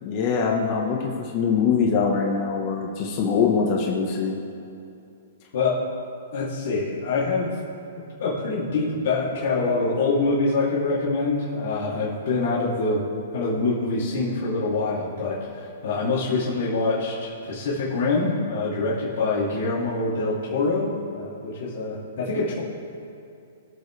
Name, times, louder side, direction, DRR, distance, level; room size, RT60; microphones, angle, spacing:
voice 1, 0.0-4.4, left 5 dB, 35° left, 0 dB, 1.3 m, -23 dB
voice 2, 6.3-7.5 8.2-13.0 13.3-22.6, left 3 dB, 55° left, -8 dB, 2.9 m, -25 dB
22.5 x 7.5 x 3.4 m, 2.6 s
hypercardioid pair, 155°, 0 cm